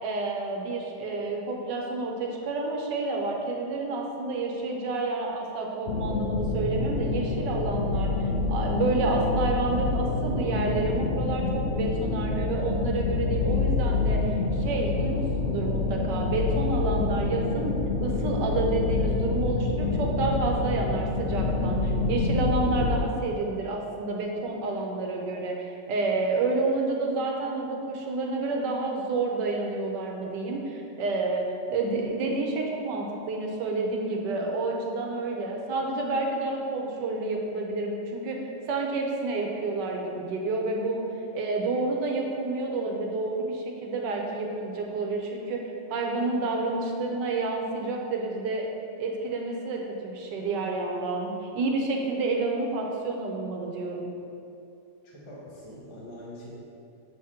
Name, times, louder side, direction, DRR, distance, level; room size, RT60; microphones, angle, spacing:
voice 1, 0.0-38.4 38.7-41.0 41.3-45.6 45.9-48.7 49.0-54.1, right 3 dB, 80° right, 0 dB, 1.4 m, -29 dB
sound 1, 5.9-23.0, left 3 dB, 75° left, 0.6 m, -27 dB
voice 2, 55.0-56.5, left 1 dB, 20° left, -6 dB, 0.9 m, -44 dB
7.0 x 4.3 x 3.7 m, 2.6 s
omnidirectional pair, 1.9 m